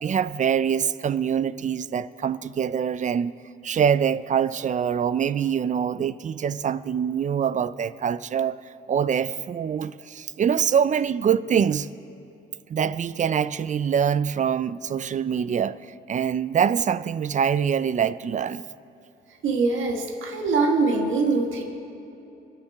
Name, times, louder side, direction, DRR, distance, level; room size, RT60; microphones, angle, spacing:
voice 1, 0.0-3.3 3.6-8.6 8.9-11.9 12.7-15.8 16.1-18.6, right 8 dB, 40° right, 0.4 m, -24 dB
voice 2, 19.4-21.6, right 3 dB, 75° right, 1.6 m, -23 dB
25.5 x 9.9 x 3.6 m
cardioid pair, 90°, 20 cm